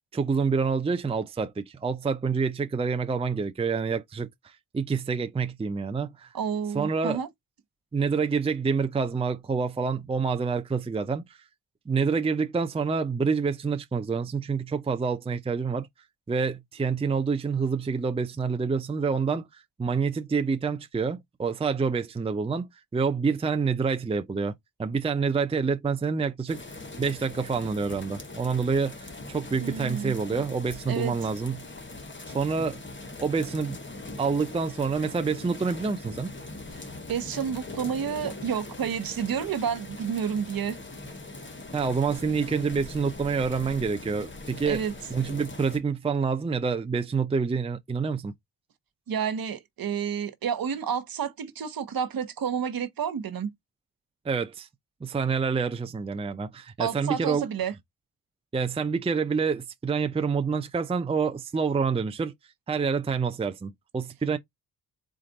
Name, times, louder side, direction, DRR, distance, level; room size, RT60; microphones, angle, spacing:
voice 1, 0.1-4.3 4.7-6.3 6.7-7.2 7.9-11.2 11.9-15.9 16.3-19.5 19.8-24.5 24.8-31.6 32.3-32.8 33.2-33.8 34.2-36.3 41.7-44.8 45.1-48.3 54.2-54.7 55.0-57.5 58.5-62.3 62.7-64.4, right 5 dB, 15° right, 0.5 m, -27 dB
voice 2, 6.3-7.3 29.6-30.1 30.9-31.1 37.1-40.8 44.7-44.9 49.1-53.5 56.8-57.7, right 7 dB, 55° right, 1.0 m, -30 dB
sound 1, 26.5-45.8, left 2 dB, 30° left, 1.3 m, -41 dB
4.3 x 2.4 x 4.0 m
cardioid pair, 65°, 41 cm